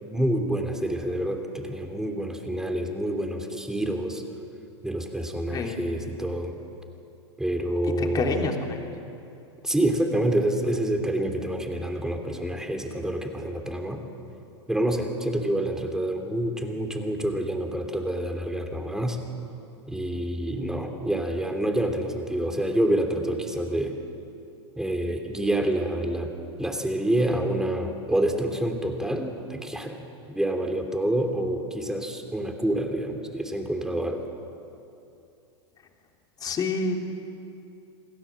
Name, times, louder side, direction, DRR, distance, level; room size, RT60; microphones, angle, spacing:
voice 1, 0.0-4.2 4.8-6.5 7.4-8.5 9.6-14.0 14.7-19.2 19.9-23.9 24.8-26.3 26.6-30.0 30.3-34.3, right 1 dB, 5° right, 4 dB, 3.1 m, -27 dB
voice 2, 7.8-8.9 36.4-37.0, left 4 dB, 25° left, 2 dB, 3.2 m, -28 dB
28.0 x 19.0 x 7.6 m, 2.7 s
hypercardioid pair, 110°, 15 cm